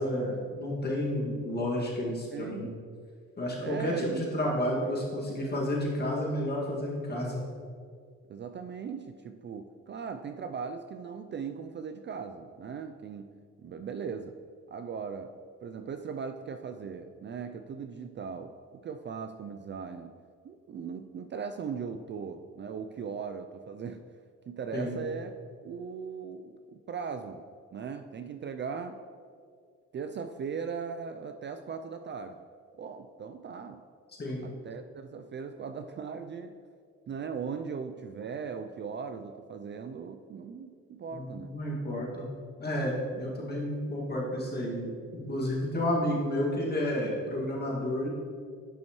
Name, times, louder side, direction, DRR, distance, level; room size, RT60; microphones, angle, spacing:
voice 1, 0.0-2.7 3.4-7.4 24.7-25.0 34.2-34.5 41.1-42.3 42.6-48.1, left 1 dB, 35° left, -3 dB, 2.1 m, -31 dB
voice 2, 2.3-2.8 3.6-4.3 8.3-14.3 14.7-15.4 15.6-20.2 20.4-24.0 24.5-25.3 25.6-27.4 27.7-29.0 29.9-32.4 32.8-33.9 34.4-36.6 37.1-41.6, right 6 dB, 40° right, 7 dB, 0.4 m, -39 dB
11.0 x 5.8 x 3.1 m, 2.1 s
cardioid pair, 90°, 30 cm